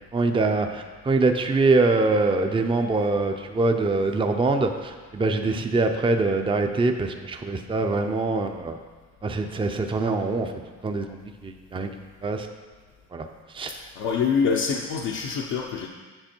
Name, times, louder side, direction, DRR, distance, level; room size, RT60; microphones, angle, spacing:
voice 1, 0.1-8.8 9.2-10.5 10.8-11.9 12.2-12.5 13.1-13.3 13.5-13.8, right 3 dB, 15° right, 5 dB, 0.6 m, -24 dB
voice 2, 14.0-15.9, left 6 dB, 80° left, -3 dB, 0.8 m, -25 dB
7.8 x 6.2 x 4.5 m, 1.4 s
cardioid pair, 90°, 30 cm